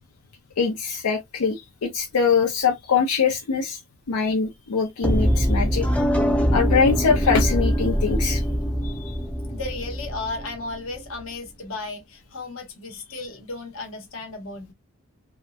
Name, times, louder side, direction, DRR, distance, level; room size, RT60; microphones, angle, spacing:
voice 1, 0.6-3.8 4.1-5.9 6.5-8.4 8.8-9.1, left 5 dB, 90° left, 0.5 m, -23 dB
sound 1, 5.0-11.0, equal, 5° left, 0.3 m, -23 dB
voice 2, 9.5-14.7, left 3 dB, 60° left, 0.9 m, -34 dB
2.8 x 2.1 x 2.2 m
head